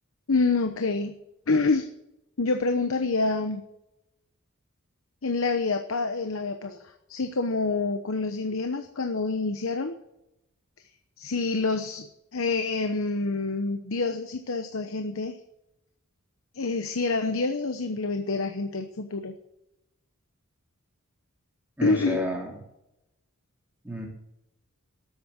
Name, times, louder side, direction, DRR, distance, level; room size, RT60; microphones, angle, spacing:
voice 1, 0.3-1.1 1.5-1.9 2.4-3.6 5.2-10.0 11.2-15.4 16.5-19.3 21.8-22.2, left 3 dB, 65° left, 7 dB, 0.9 m, -27 dB
voice 2, 21.8-22.6 23.8-24.1, left 1 dB, 10° right, -1 dB, 3.4 m, -31 dB
13.0 x 8.5 x 7.8 m, 0.87 s
head